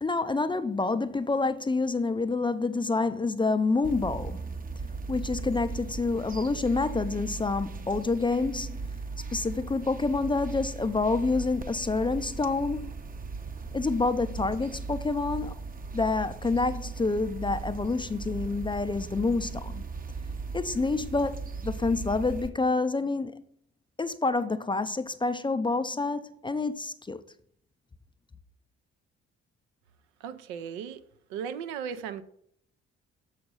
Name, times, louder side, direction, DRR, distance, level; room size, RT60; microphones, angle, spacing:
voice 1, 0.0-4.5 5.1-8.9 9.3-12.9 13.7-15.6 15.9-19.8 20.5-23.4 24.0-27.2, left 3 dB, 15° left, 0.5 m, -28 dB
sound 1, 3.8-22.5, right 4 dB, 25° right, 0.7 m, -38 dB
voice 2, 30.2-31.0 31.3-32.2, right 7 dB, 70° right, 0.6 m, -36 dB
6.8 x 4.9 x 5.5 m
figure-of-eight pair, 40°, 34 cm